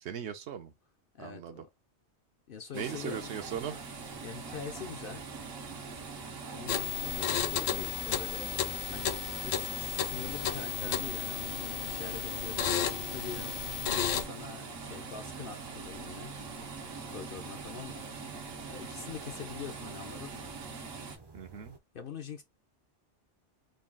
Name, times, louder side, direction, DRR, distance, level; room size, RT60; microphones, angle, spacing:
voice 1, 0.0-0.7 1.2-1.6 2.7-3.7 21.3-21.7, right 8 dB, 65° right, 0.9 m, -38 dB
voice 2, 1.1-1.7 2.5-3.3 4.2-5.2 6.5-8.5 8.9-12.8 13.1-16.3 16.9-18.3 18.7-20.5 21.9-22.4, left 7 dB, 55° left, 0.6 m, -44 dB
sound 1, 2.7-21.2, right 4 dB, 85° right, 1.3 m, -43 dB
sound 2, 3.3-21.8, right 3 dB, 35° right, 0.4 m, -52 dB
sound 3, 6.7-14.2, left 9 dB, 75° left, 1.0 m, -33 dB
3.9 x 2.3 x 3.4 m
omnidirectional pair, 1.3 m